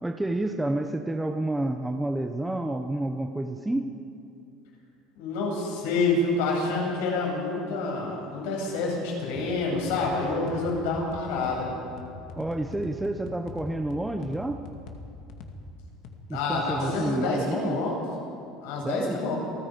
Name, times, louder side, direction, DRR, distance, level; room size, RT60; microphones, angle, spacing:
voice 1, 0.0-3.9 12.4-14.6 16.3-17.8 18.8-19.2, right 1 dB, 5° right, 5 dB, 0.7 m, -29 dB
voice 2, 5.2-11.7 16.3-18.0 18.6-19.4, left 3 dB, 85° left, -1 dB, 7.5 m, -28 dB
sound 1, 9.3-17.1, left 3 dB, 45° left, 2.2 m, -43 dB
28.0 x 19.0 x 5.2 m, 2.5 s
cardioid pair, 175°, 0 cm